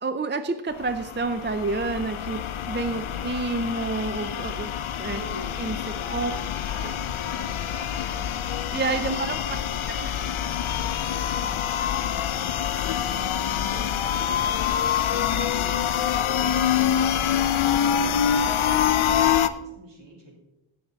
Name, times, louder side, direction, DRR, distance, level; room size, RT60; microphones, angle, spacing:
voice 1, 0.0-4.7 5.0-5.2 5.6-5.8 6.1-6.3 8.7-10.2, right 3 dB, 20° right, 9 dB, 0.5 m, -29 dB
sound 1, 0.8-19.5, left 9 dB, 70° left, 0.6 m, -26 dB
voice 2, 2.8-3.2 5.1-5.6 5.9-8.3 8.9-9.8 11.1-12.5 13.1-13.9 14.2-15.8 16.1-20.4, equal, 60° right, -1 dB, 3.3 m, -44 dB
16.5 x 6.7 x 4.0 m, 0.93 s
wide cardioid pair, 85°, 50 cm